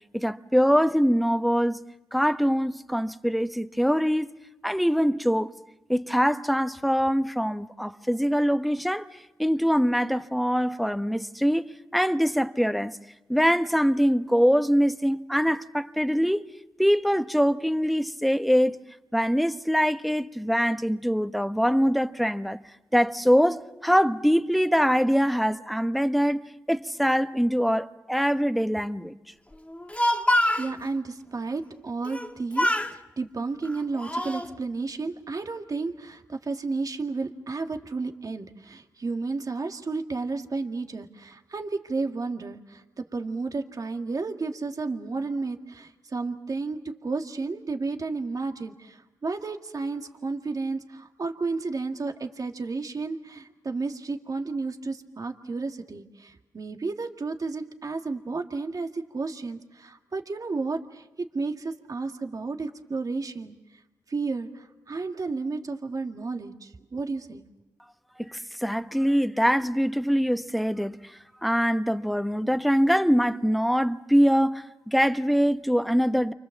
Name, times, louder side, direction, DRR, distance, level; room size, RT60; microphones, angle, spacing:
voice 1, 0.1-1.8 2.1-4.3 4.6-5.5 5.9-9.1 9.4-13.0 13.3-16.5 16.8-18.8 19.1-22.6 22.9-26.4 26.7-29.2 68.2-76.3, equal, ahead, 1.2 m, -23 dB
Speech, 29.7-30.7 32.1-32.3 32.6-33.0 33.7-34.5, left 1 dB, 15° left, 2.0 m, -25 dB
voice 2, 30.6-63.6 64.1-67.4, right 3 dB, 50° right, 2.1 m, -32 dB
30.0 x 24.5 x 7.3 m
supercardioid pair, 40°, 7 cm